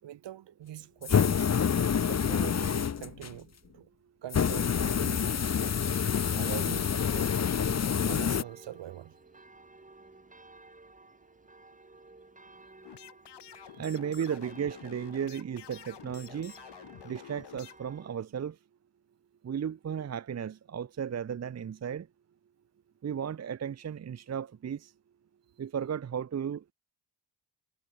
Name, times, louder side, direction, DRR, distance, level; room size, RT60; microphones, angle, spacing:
voice 1, 0.0-1.5 2.1-3.5 3.7-3.8 4.2-5.5 5.8-5.9 6.3-9.2, right 12 dB, 80° right, 6.0 m, -44 dB
sound 1, 1.0-3.4 4.3-8.4, left 7 dB, 35° left, 1.3 m, -27 dB
sound 2, 4.3-18.1, right 2 dB, 20° right, 5.5 m, -55 dB
sound 3, 12.8-17.8, left 10 dB, 70° left, 5.0 m, -49 dB
voice 2, 13.7-16.5 17.0-18.6 19.4-22.1 23.0-24.9 25.6-26.7, right 8 dB, 40° right, 0.9 m, -35 dB
cardioid pair, 85°, 42 cm